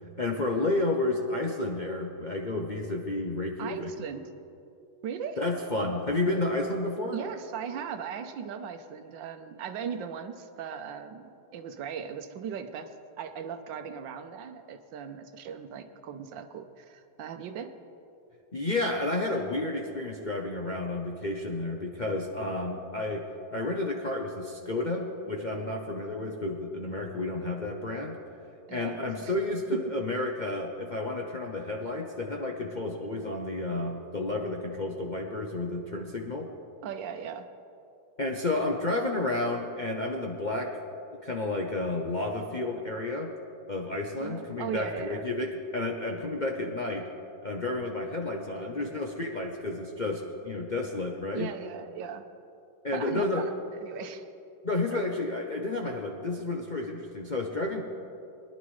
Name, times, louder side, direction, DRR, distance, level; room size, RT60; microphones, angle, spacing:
voice 1, 0.2-3.9 5.4-7.2 18.5-28.2 28.7-36.5 38.2-40.7 41.2-43.3 43.7-45.5 45.7-47.1 47.4-51.5 52.8-53.4 54.6-57.8, left 2 dB, 45° left, 0 dB, 0.6 m, -31 dB
voice 2, 3.6-4.3 5.0-5.4 7.1-12.9 13.2-17.7 28.7-29.3 29.7-29.8 36.8-37.4 44.2-45.3 48.4-49.1 51.3-52.2 52.9-54.2 54.8-55.0, right 7 dB, 85° right, 7 dB, 1.5 m, -38 dB
22.0 x 10.5 x 3.2 m, 2.6 s
omnidirectional pair, 1.9 m